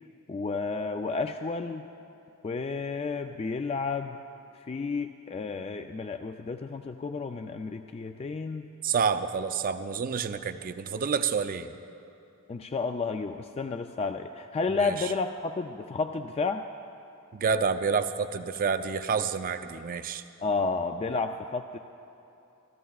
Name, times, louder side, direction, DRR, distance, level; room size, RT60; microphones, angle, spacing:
voice 1, 0.3-1.9 2.4-4.2 4.7-8.7 12.5-16.6 20.4-21.8, left 4 dB, 30° left, 7 dB, 0.3 m, -31 dB
voice 2, 8.8-11.7 14.7-15.1 17.3-20.2, right 6 dB, 40° right, 9 dB, 0.4 m, -28 dB
26.0 x 14.0 x 2.4 m, 2.8 s
head